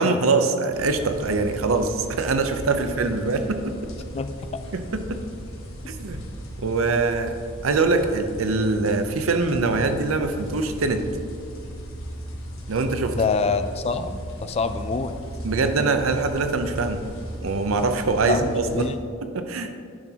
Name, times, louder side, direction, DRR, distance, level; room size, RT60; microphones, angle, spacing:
voice 1, 0.0-3.7 4.7-5.2 5.9-6.2 6.6-7.4 7.6-11.0 12.7-13.2 15.4-17.0 17.4-18.9 19.2-19.7, right 3 dB, 90° right, 8 dB, 0.6 m, -23 dB
sound 1, 0.7-18.9, equal, 85° left, 1.7 m, -37 dB
voice 2, 13.1-15.1 18.3-19.0, left 4 dB, 30° left, 9 dB, 0.3 m, -25 dB
10.5 x 6.1 x 2.9 m, 2.2 s
head